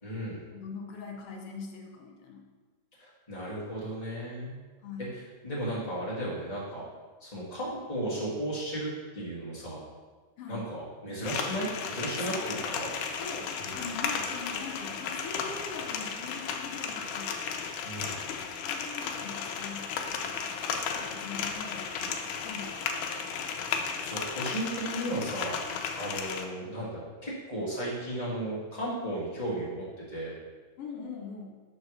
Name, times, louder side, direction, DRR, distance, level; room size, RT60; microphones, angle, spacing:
voice 1, 0.0-0.4 3.0-4.6 5.4-6.8 7.2-9.8 10.5-12.9 13.6-13.8 17.8-18.3 24.0-25.6 26.0-30.4, right 1 dB, 20° left, -7 dB, 1.1 m, -35 dB
voice 2, 0.5-2.5 4.8-5.2 10.4-10.7 12.3-12.7 13.2-17.4 18.6-20.6 20.9-23.6 30.8-31.6, left 4 dB, 70° left, 1 dB, 1.5 m, -42 dB
sound 1, 11.2-26.5, left 6 dB, 85° left, 2.1 m, -34 dB
6.1 x 4.0 x 6.3 m, 1.4 s
omnidirectional pair, 3.5 m